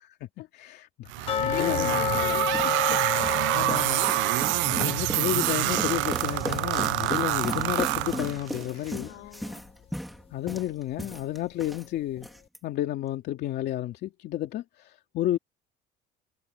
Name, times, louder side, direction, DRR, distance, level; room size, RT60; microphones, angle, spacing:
voice 1, 0.5-1.1 1.4-2.0 3.5-4.1 4.7-9.1 10.3-12.3 12.6-15.4, left 13 dB, 55° left, 2.8 m, -31 dB
sound 1, 1.1-8.6, right 21 dB, 80° right, 0.4 m, -27 dB
voice 2, 1.2-3.0 3.6-4.0 8.7-9.6, left 17 dB, 80° left, 4.4 m, -39 dB
sound 2, 1.3-8.1 8.4-8.5 9.0-9.1 9.7-9.8, left 7 dB, 30° left, 0.7 m, -32 dB
sound 3, 1.9-11.9 12.2-12.6, equal, ahead, 2.7 m, -37 dB
cardioid pair, 180°, 20 cm